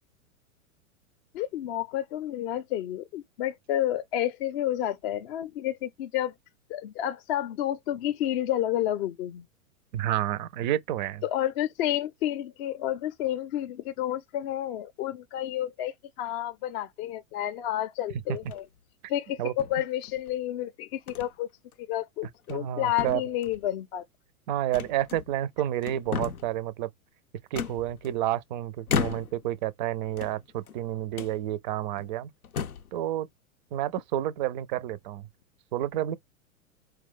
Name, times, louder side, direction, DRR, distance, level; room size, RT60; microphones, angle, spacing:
voice 1, 1.3-6.3 6.7-9.4 11.2-18.7 19.1-21.5 21.8-24.0, left 12 dB, 45° left, 0.5 m, -30 dB
voice 2, 9.9-11.2 19.4-19.5 22.5-23.2 24.5-26.9 27.5-32.3 32.9-33.3 33.7-35.3 35.7-36.2, right 12 dB, 35° right, 0.4 m, -30 dB
sound 1, 18.4-18.8 19.6-20.3 21.1-21.3 21.7-21.8 22.3-22.7 23.0-23.7 24.7-25.5 25.8-26.6 27.5-28.4 28.9-29.5 30.1-30.8 31.1-31.4 32.0-32.1 32.4-32.9, left 6 dB, 90° left, 0.6 m, -34 dB
4.5 x 2.2 x 3.7 m
figure-of-eight pair, 100°, 43 cm